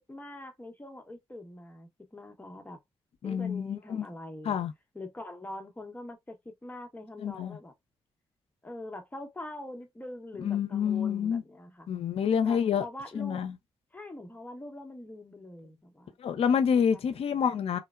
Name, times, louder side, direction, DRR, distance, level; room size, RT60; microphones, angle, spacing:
voice 1, 0.1-2.8 3.2-4.6 4.9-7.7 8.6-11.9 12.4-13.4 13.9-16.6 16.9-17.0 17.7-17.8, left 1 dB, 15° left, 0.9 m, -44 dB
voice 2, 3.2-4.1 4.4-4.7 7.2-7.6 10.4-11.4 11.9-12.9 13.1-13.5 16.2-17.8, left 7 dB, 70° left, 0.5 m, -27 dB
3.1 x 2.0 x 2.3 m
cardioid pair, 70°, 10 cm